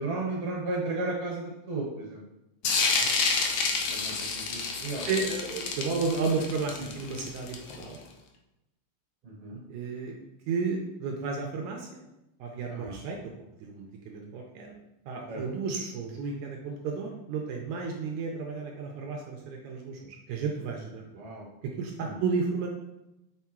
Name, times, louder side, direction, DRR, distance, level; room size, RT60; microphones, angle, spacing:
voice 1, 0.0-2.2 3.9-5.1 9.2-9.6 12.7-13.0 15.3-15.4 21.2-21.5 22.0-22.1, right 2 dB, 65° right, -2 dB, 2.1 m, -34 dB
sound 1, 2.6-8.0, left 4 dB, 90° left, 1.3 m, -29 dB
voice 2, 2.7-3.1 5.1-8.0 9.7-10.1 10.5-12.0 12.4-13.2 13.6-14.8 15.1-21.0 21.8-22.7, right 4 dB, 80° right, 1 dB, 1.8 m, -32 dB
6.5 x 3.5 x 4.4 m, 0.91 s
omnidirectional pair, 3.9 m